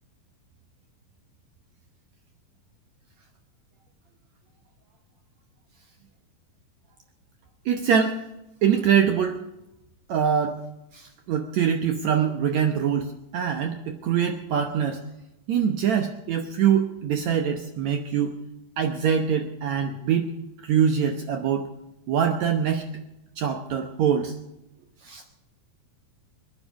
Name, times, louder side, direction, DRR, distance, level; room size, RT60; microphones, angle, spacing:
voice 1, 7.7-8.2 8.6-9.4 10.1-10.6 10.9-15.0 15.5-18.3 18.8-20.3 20.6-21.7 22.1-22.9 23.4-24.4 25.0-25.2, right 8 dB, 70° right, 5 dB, 1.8 m, -24 dB
22.0 x 9.9 x 6.3 m, 0.90 s
omnidirectional pair, 4.3 m